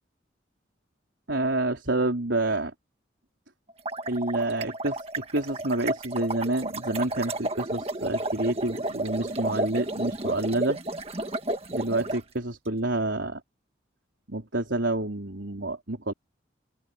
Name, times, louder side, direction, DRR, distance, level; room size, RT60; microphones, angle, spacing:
voice 1, 1.3-2.7 4.1-5.0 5.3-10.8 11.7-13.4 14.3-16.1, right 2 dB, 80° right, 4.0 m, -28 dB
sound 1, 3.7-12.2, right 2 dB, 30° right, 1.7 m, -32 dB
open air
head